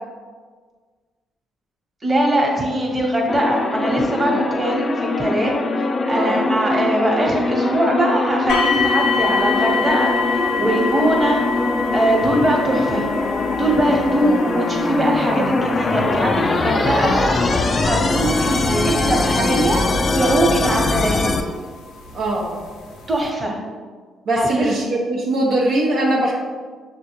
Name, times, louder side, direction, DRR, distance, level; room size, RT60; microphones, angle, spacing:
voice 1, 2.0-11.4 11.9-13.1 13.6-17.4 17.8-19.9 20.1-21.4 23.1-23.6 24.3-24.7, right 1 dB, 30° right, -1 dB, 1.1 m, -21 dB
sound 1, 3.3-21.4, left 3 dB, 40° left, 0.4 m, -22 dB
voice 2, 6.1-6.4 22.1-22.5 24.3-26.3, right 1 dB, 65° right, -3 dB, 0.6 m, -21 dB
sound 2, 8.5-21.4 22.2-22.3 22.9-23.0, left 4 dB, 85° left, 0.6 m, -26 dB
6.1 x 2.2 x 2.9 m, 1.5 s
supercardioid pair, 55°, 0 cm